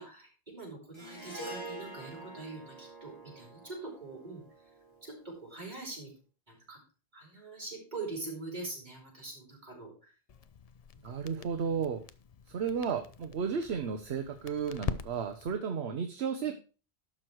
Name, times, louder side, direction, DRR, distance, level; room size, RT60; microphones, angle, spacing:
voice 1, 0.0-4.4 5.0-6.1 6.5-6.8 7.1-10.1 11.0-11.8 16.4-16.5, right 3 dB, 40° right, -2 dB, 5.1 m, -44 dB
Harp, 0.9-5.4, right 2 dB, 25° left, 3.4 m, -46 dB
Crackle, 10.3-15.6, left 7 dB, 45° left, 0.6 m, -43 dB
voice 2, 11.0-12.0 12.5-16.5, right 6 dB, 70° right, 7 dB, 1.1 m, -33 dB
12.0 x 6.3 x 4.6 m, 0.36 s
omnidirectional pair, 1.1 m